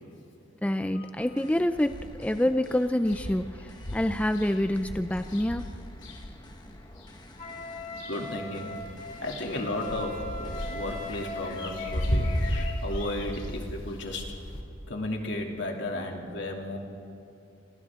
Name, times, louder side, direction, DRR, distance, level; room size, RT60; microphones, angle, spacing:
voice 1, 0.6-5.7, left 1 dB, 5° left, 9 dB, 0.4 m, -27 dB
sound 1, 1.2-12.7, left 1 dB, 20° left, 1.5 m, -50 dB
sound 2, 1.8-2.4 2.7-2.8 3.0-7.1 7.6-8.5 8.7-14.6, equal, 80° left, 2.7 m, -34 dB
Wind instrument woodwind instrument, 7.4-12.8, left 1 dB, 45° left, 5.1 m, -39 dB
voice 2, 8.1-8.7 9.2-14.3 14.9-16.8, left 1 dB, 65° left, 1 dB, 2.8 m, -34 dB
28.5 x 26.0 x 3.7 m, 2.6 s
head